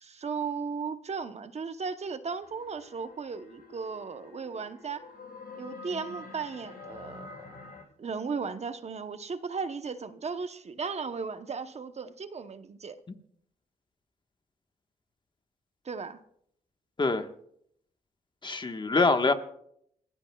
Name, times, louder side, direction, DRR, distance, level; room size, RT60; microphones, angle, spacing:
voice 1, 0.0-5.0 5.6-7.4 8.0-12.9 15.8-16.2, right 5 dB, 40° right, 0.9 m, -36 dB
sound 1, 2.4-7.8, left 3 dB, 65° left, 7.9 m, -47 dB
voice 2, 18.4-19.3, left 3 dB, 30° left, 1.4 m, -24 dB
29.0 x 15.5 x 2.3 m
cardioid pair, 100°, 16 cm